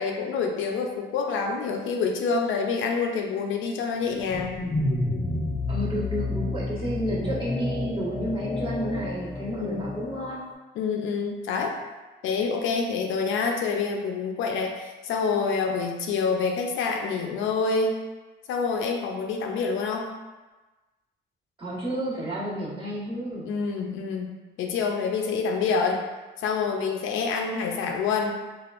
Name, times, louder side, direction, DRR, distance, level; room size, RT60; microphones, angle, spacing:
voice 1, 0.0-4.6 9.6-9.9 10.8-11.8 12.2-18.0 18.5-20.1 23.4-24.3 24.6-26.0 26.4-28.4, left 5 dB, 80° left, 2 dB, 0.5 m, -27 dB
sound 1, 4.0-10.4, left 2 dB, 25° left, 0.5 m, -30 dB
voice 2, 5.7-10.4 21.6-23.5, equal, 25° right, -8 dB, 1.2 m, -31 dB
3.4 x 2.4 x 2.4 m, 1.2 s
cardioid pair, 90°, 20 cm